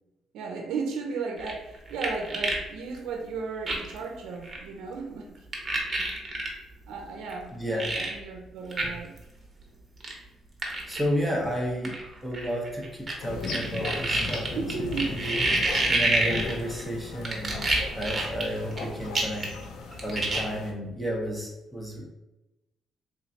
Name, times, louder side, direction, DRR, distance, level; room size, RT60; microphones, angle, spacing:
voice 1, 0.3-5.5 6.0-6.2 6.9-9.2 14.5-15.1, right 4 dB, 85° right, 1 dB, 0.5 m, -35 dB
sound 1, 1.4-2.6 2.9-3.0 3.7-4.0 4.4-4.6 5.5-6.5 7.3-7.4 7.8-8.1 8.7-8.9 9.2-9.3 10.0-10.1 10.6-11.0 11.8-13.1 13.4-16.8 17.2-18.8 19.1-19.6 19.9-20.4, right 2 dB, 30° right, 1.0 m, -27 dB
voice 2, 7.5-7.9 8.8-8.9 10.9-12.0 12.2-15.4 15.9-17.7 17.9-19.5 20.0-22.1, equal, 5° left, -3 dB, 0.8 m, -32 dB
sound 2, 13.2-20.7, left 3 dB, 85° left, 0.5 m, -37 dB
3.6 x 3.0 x 2.8 m, 0.97 s
cardioid pair, 90°, 0 cm